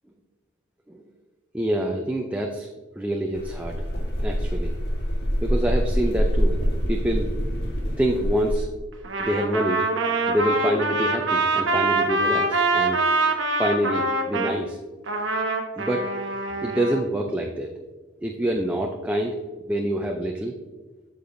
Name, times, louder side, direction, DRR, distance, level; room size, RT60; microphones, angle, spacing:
voice 1, 1.5-2.7 3.0-3.8 4.2-4.8 5.4-6.6 6.9-7.3 8.0-8.7 9.2-9.8 10.3-13.0 13.6-14.8 15.8-16.1 16.6-17.7 18.2-19.4 19.7-20.6, right 1 dB, 10° right, 2 dB, 0.4 m, -26 dB
sound 1, 3.3-8.6, equal, 55° left, 1.4 m, -25 dB
Trumpet, 9.0-14.6 15.1-17.0, right 2 dB, 75° right, 1.0 m, -24 dB
8.5 x 6.9 x 2.6 m, 1.3 s
head